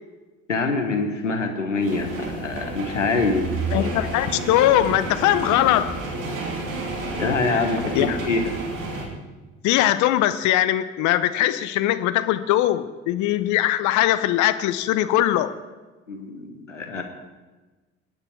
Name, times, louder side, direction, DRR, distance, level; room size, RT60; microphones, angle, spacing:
voice 1, 0.5-3.5 7.2-8.5 16.1-17.0, left 3 dB, 90° left, 5 dB, 1.2 m, -25 dB
sound 1, 1.8-9.1, right 3 dB, 60° right, 3.0 m, -30 dB
voice 2, 3.7-6.0 7.5-7.6 7.9-8.2 9.6-15.5, left 13 dB, 55° left, 12 dB, 0.8 m, -21 dB
21.0 x 9.8 x 4.6 m, 1.2 s
figure-of-eight pair, 55°, 36 cm